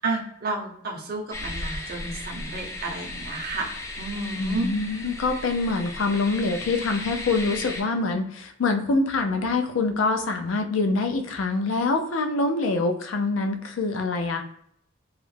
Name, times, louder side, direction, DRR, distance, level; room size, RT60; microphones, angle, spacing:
voice 1, 0.0-4.7, right 3 dB, 50° right, 0 dB, 0.6 m, -31 dB
sound 1, 1.3-7.8, left 2 dB, 15° left, 0.3 m, -36 dB
voice 2, 4.4-14.4, left 3 dB, 85° left, 5 dB, 0.4 m, -25 dB
2.3 x 2.0 x 3.1 m, 0.72 s
head